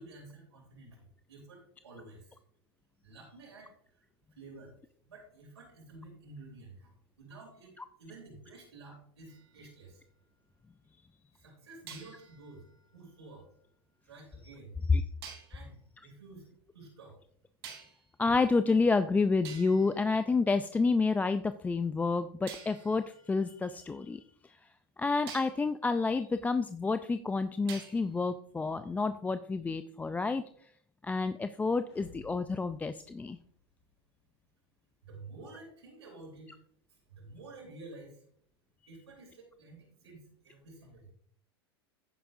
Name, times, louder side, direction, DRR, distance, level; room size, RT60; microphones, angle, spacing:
voice 1, 0.0-2.4 3.0-4.0 4.3-10.0 11.3-12.7 12.9-13.5 14.0-14.8 15.5-15.8 16.0-16.5 16.7-17.2 35.0-36.6 36.9-38.2 38.9-41.1, right 2 dB, 85° right, -3 dB, 3.1 m, -51 dB
sound 1, 9.3-10.7 11.9-14.0 15.2-15.6 17.6-18.2 19.0-19.1 19.4-21.1 22.5-24.6 25.3-25.7 27.7-28.3, right 7 dB, 70° right, 3.5 m, -51 dB
voice 2, 18.2-24.2 25.0-30.4 31.0-33.4, left 4 dB, 10° left, 11 dB, 0.4 m, -29 dB
sound 2, 31.8-33.9, left 4 dB, 90° left, 3.2 m, -56 dB
10.0 x 10.0 x 2.6 m, 0.63 s
hypercardioid pair, 100°, 14 cm